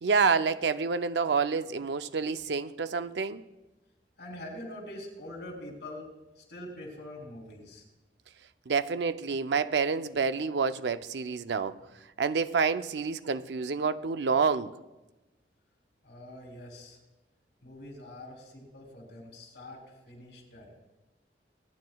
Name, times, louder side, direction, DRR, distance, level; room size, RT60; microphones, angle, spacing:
voice 1, 0.0-3.4 8.7-11.8 12.2-14.7, right 5 dB, 80° right, 0.5 m, -28 dB
voice 2, 4.2-7.8 16.0-17.0 17.6-20.8, left 1 dB, 85° left, 3.5 m, -44 dB
26.5 x 9.6 x 2.3 m
head